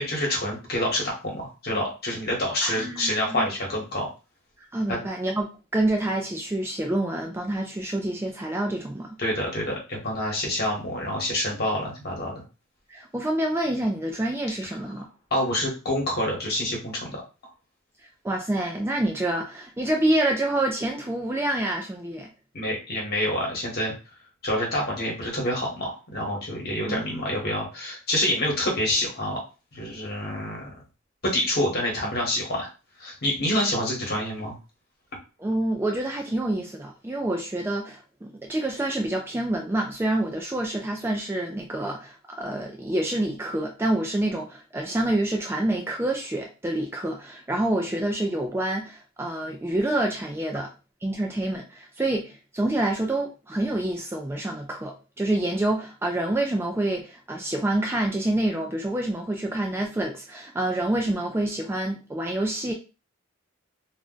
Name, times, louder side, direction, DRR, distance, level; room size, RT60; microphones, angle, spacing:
voice 1, 0.0-4.1 4.9-5.0 9.2-12.3 15.3-17.2 22.5-23.9 24.4-29.4 29.7-30.7 31.2-32.7 33.0-34.5, left 1 dB, 50° left, -1 dB, 1.1 m, -27 dB
voice 2, 2.6-3.4 4.7-9.2 12.9-15.1 18.2-22.3 26.9-27.3 35.4-50.7 51.0-62.7, right 1 dB, 10° right, 1 dB, 0.3 m, -27 dB
2.4 x 2.1 x 3.7 m, 0.31 s
head